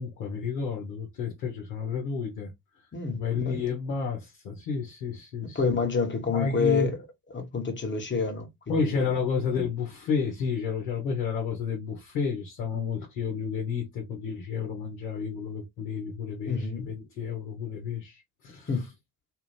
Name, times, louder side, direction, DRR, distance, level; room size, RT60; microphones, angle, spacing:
voice 1, 0.0-2.5 3.1-5.6 6.3-6.9 8.7-18.7, left 5 dB, 75° left, 1.1 m, -31 dB
voice 2, 2.9-3.7 5.4-7.0 7.3-9.1 16.5-16.9 18.7-18.9, left 5 dB, 25° left, 1.1 m, -28 dB
2.6 x 2.5 x 3.2 m
figure-of-eight pair, 50°, 48 cm